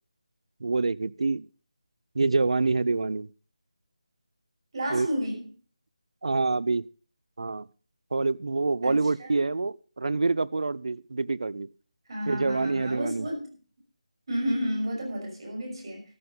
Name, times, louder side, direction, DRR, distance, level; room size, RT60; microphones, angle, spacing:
voice 1, 0.6-1.5 2.1-3.3 4.9-5.1 6.2-6.8 7.4-7.7 8.1-11.7 12.3-13.3, right 3 dB, 65° right, 20 dB, 0.6 m, -26 dB
voice 2, 4.7-5.4 8.8-9.3 12.1-13.5 14.3-16.0, equal, 50° right, 1 dB, 6.1 m, -31 dB
13.5 x 8.0 x 5.4 m, 0.38 s
figure-of-eight pair, 160°, 3 cm